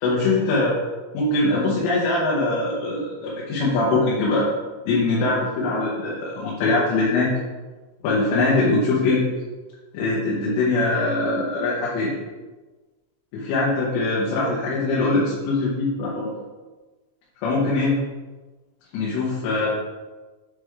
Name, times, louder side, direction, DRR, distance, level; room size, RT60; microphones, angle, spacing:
voice 1, 0.0-0.8 1.1-4.5 4.9-7.3 8.0-9.2 9.9-12.2 13.3-16.3 17.4-18.0 18.9-19.7, left 2 dB, 85° left, -6 dB, 3.6 m, -22 dB
8.5 x 3.5 x 3.3 m, 1.2 s
omnidirectional pair, 5.6 m